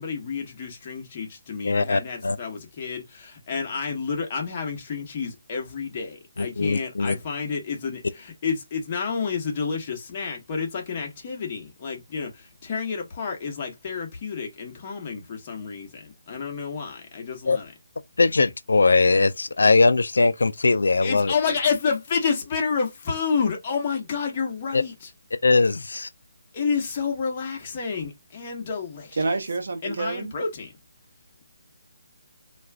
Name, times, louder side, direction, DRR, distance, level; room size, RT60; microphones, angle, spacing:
voice 1, 0.0-17.7 21.0-25.1 26.5-29.2 29.8-30.7, left 5 dB, 30° left, 0.9 m, -29 dB
voice 2, 1.6-2.4 6.4-7.2 17.5-17.6 18.2-21.3 24.7-24.8 25.3-26.1, left 3 dB, 85° left, 0.3 m, -20 dB
voice 3, 29.2-30.3, right 3 dB, 70° right, 0.7 m, -27 dB
2.4 x 2.3 x 3.3 m
hypercardioid pair, 165°, 0 cm